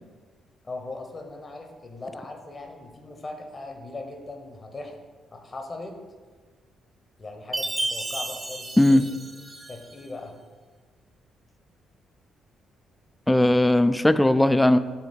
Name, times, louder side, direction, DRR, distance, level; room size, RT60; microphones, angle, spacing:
voice 1, 0.6-5.0 5.3-5.9 7.2-9.0 9.7-10.3, left 2 dB, 35° left, 3 dB, 1.0 m, -39 dB
Chime, 7.5-10.0, right 2 dB, 25° right, 0.7 m, -32 dB
voice 2, 13.3-14.8, left 1 dB, 10° left, 12 dB, 0.3 m, -18 dB
5.9 x 3.6 x 5.1 m, 1.4 s
figure-of-eight pair, 40°, 0 cm